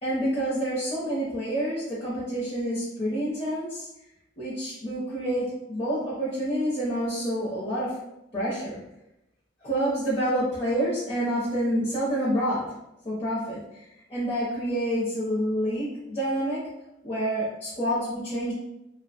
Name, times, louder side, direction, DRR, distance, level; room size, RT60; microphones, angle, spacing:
voice 1, 0.0-3.9 4.4-7.9 8.3-8.8 9.6-12.7 13.0-13.6 14.1-16.6 17.0-18.5, equal, 30° left, -8 dB, 0.6 m, -28 dB
2.6 x 2.1 x 2.7 m, 0.89 s
head